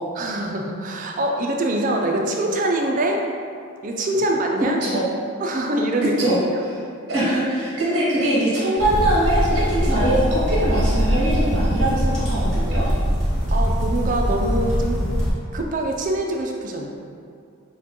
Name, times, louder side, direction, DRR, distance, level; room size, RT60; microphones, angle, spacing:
voice 1, 0.2-3.3 3.8-4.8 5.4-6.2 13.5-15.1 15.5-16.9, right 1 dB, 40° right, 1 dB, 0.3 m, -24 dB
voice 2, 6.2-6.8 7.1-12.9, right 1 dB, 55° right, -8 dB, 1.2 m, -22 dB
sound 1, 8.8-15.3, equal, 5° left, 1.1 m, -22 dB
6.4 x 2.2 x 2.9 m, 2.4 s
head